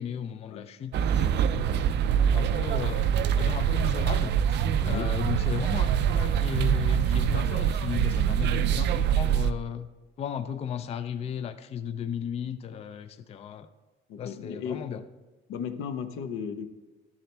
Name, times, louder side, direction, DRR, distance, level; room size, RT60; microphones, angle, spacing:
voice 1, 0.0-1.9 2.3-9.9 10.2-13.7 14.2-15.0, left 8 dB, 30° left, 11 dB, 0.4 m, -35 dB
sound 1, 0.9-9.5, right 9 dB, 55° right, 0.5 m, -25 dB
voice 2, 4.8-5.1 14.1-14.9 15.5-16.7, left 7 dB, 85° left, 9 dB, 0.9 m, -35 dB
12.0 x 7.2 x 3.3 m, 1.2 s
cardioid pair, 150°, 21 cm